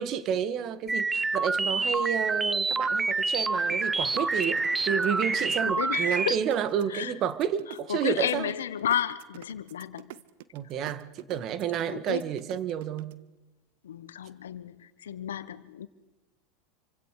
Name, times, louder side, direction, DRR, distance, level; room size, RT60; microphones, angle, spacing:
voice 1, 0.0-8.5 10.5-13.2, right 8 dB, 45° right, 12 dB, 2.1 m, -30 dB
sound 1, 0.9-6.4, right 3 dB, 15° right, 0.8 m, -27 dB
sound 2, 3.7-6.2 6.5-13.1, right 14 dB, 65° right, 1.0 m, -46 dB
voice 2, 5.6-6.4 6.9-7.1 7.7-10.1 11.9-12.2 13.8-15.9, left 10 dB, 80° left, 14 dB, 1.3 m, -32 dB
29.0 x 25.0 x 5.0 m, 1.1 s
hypercardioid pair, 90°, 0 cm